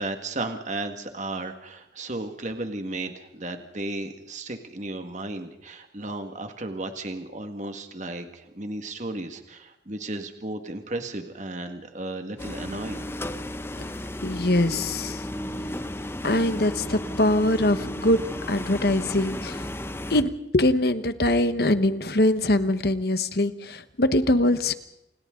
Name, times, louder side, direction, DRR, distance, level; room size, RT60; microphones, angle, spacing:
voice 1, 0.0-13.0, right 2 dB, 40° right, 6 dB, 1.9 m, -34 dB
sound 1, 12.4-20.2, left 1 dB, 15° left, 0.8 m, -34 dB
voice 2, 14.2-15.2 16.2-18.2 18.5-19.7 20.1-24.7, left 1 dB, 60° left, 11 dB, 1.3 m, -23 dB
28.5 x 28.0 x 3.9 m, 0.84 s
head